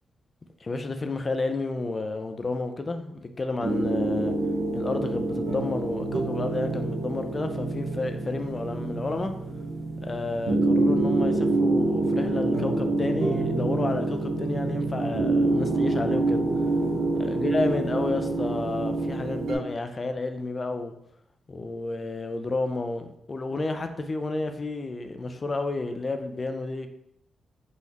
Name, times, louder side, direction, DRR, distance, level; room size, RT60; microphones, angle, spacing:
voice 1, 0.6-4.3 4.7-9.3 10.0-16.5 17.2-20.9 21.5-26.9, left 3 dB, 25° left, 7 dB, 0.4 m, -31 dB
sound 1, 3.6-19.5, right 2 dB, 75° right, 0.9 m, -26 dB
3.9 x 3.1 x 4.1 m, 0.76 s
wide cardioid pair, 175°, 0 cm